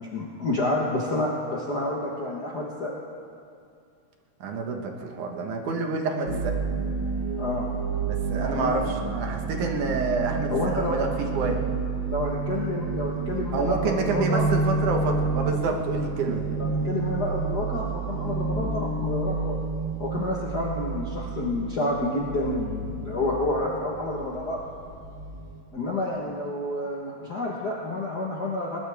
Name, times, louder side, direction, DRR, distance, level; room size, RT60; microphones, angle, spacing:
voice 1, 0.0-2.9 7.4-7.7 8.3-8.8 10.5-11.0 12.1-14.4 16.5-19.6 20.0-24.6 25.7-28.8, left 2 dB, 45° left, -4 dB, 1.3 m, -29 dB
voice 2, 4.4-6.6 8.1-11.1 11.3-11.6 13.5-16.6 17.3-17.4, right 3 dB, 80° right, 2 dB, 2.9 m, -28 dB
sound 1, 6.3-25.6, right 4 dB, 50° right, 1.9 m, -30 dB
20.5 x 19.5 x 3.5 m, 2.4 s
omnidirectional pair, 3.4 m